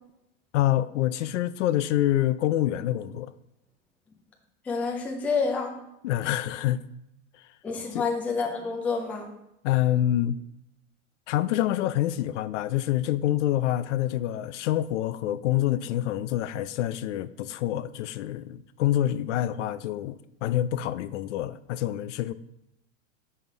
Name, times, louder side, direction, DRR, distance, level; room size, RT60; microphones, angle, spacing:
voice 1, 0.5-3.3 6.0-6.8 7.9-8.0 9.6-10.4 11.3-22.3, left 13 dB, 70° left, 0.5 m, -26 dB
voice 2, 4.6-5.7 7.6-9.3, left 4 dB, 5° left, 0.4 m, -28 dB
5.6 x 5.6 x 4.6 m
supercardioid pair, 155°, 37 cm